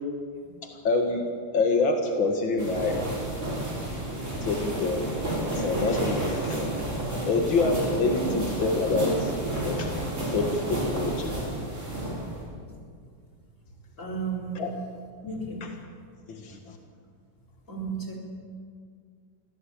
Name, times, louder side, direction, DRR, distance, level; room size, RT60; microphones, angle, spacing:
voice 1, 0.6-3.0 4.4-6.7 7.2-9.3 9.6-10.0 10.3-11.4 14.6-14.7 15.6-15.7 16.3-16.8, left 3 dB, 90° left, 3 dB, 2.5 m, -27 dB
sound 1, 2.6-12.5, right 1 dB, 40° right, 6.0 m, -31 dB
voice 2, 8.0-8.4 14.0-14.6 15.2-15.7 17.7-18.2, right 4 dB, 40° left, -1 dB, 4.5 m, -34 dB
24.0 x 16.5 x 8.6 m, 2.1 s
omnidirectional pair, 2.0 m